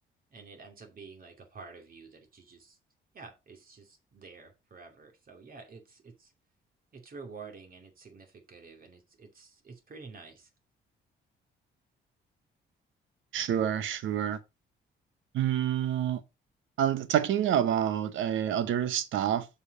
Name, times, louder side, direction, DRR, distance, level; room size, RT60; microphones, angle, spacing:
voice 1, 0.3-2.8 3.1-6.3 6.9-10.5, right 4 dB, 45° right, 2.5 m, -49 dB
voice 2, 13.3-14.4 15.3-16.2 16.8-19.5, right 10 dB, 80° right, 1.0 m, -27 dB
7.2 x 4.7 x 4.9 m
cardioid pair, 90°, 20 cm